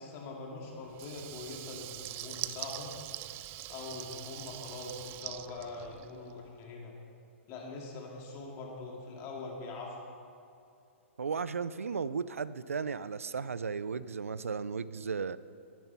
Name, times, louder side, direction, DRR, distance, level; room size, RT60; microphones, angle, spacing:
voice 1, 0.0-2.9 3.7-6.9 7.5-10.0, left 3 dB, 35° left, -1 dB, 2.4 m, -43 dB
Water tap faucet / Liquid, 0.9-6.4, right 15 dB, 30° right, 0.4 m, -43 dB
voice 2, 11.2-15.4, right 5 dB, 90° right, 16 dB, 0.5 m, -35 dB
13.5 x 10.5 x 5.5 m, 2.5 s
hypercardioid pair, 125°, 7 cm